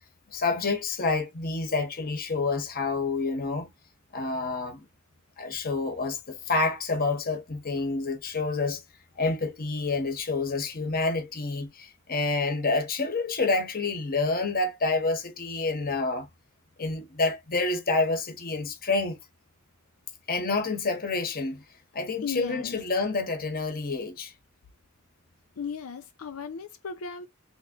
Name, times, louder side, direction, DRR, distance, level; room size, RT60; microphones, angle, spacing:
voice 1, 0.3-3.7 4.1-4.8 5.4-8.8 9.2-16.3 16.8-19.2 20.3-21.6 21.9-24.3, left 3 dB, 45° left, 1.1 m, -28 dB
voice 2, 22.2-22.8 25.6-27.3, left 5 dB, 90° left, 0.6 m, -35 dB
3.6 x 2.9 x 2.9 m
head